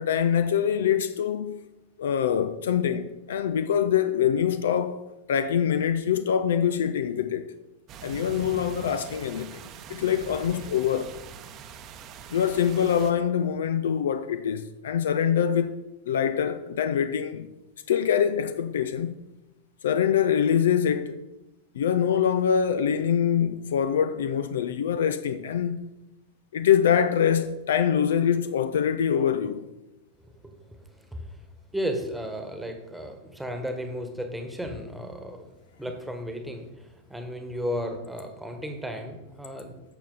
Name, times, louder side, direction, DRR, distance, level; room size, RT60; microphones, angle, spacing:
voice 1, 0.0-1.6 2.0-7.5 8.0-9.6 9.9-11.1 12.3-15.8 16.1-17.5 17.9-19.2 19.8-21.2 21.7-25.8 26.5-29.6, left 8 dB, 60° left, 0.5 m, -24 dB
sound 1, 7.9-13.1, right 6 dB, 35° right, 0.8 m, -43 dB
voice 2, 30.4-31.4 31.7-35.5 35.8-39.8, equal, 5° right, 1.4 m, -34 dB
11.5 x 6.8 x 3.9 m
figure-of-eight pair, 90°, 0 cm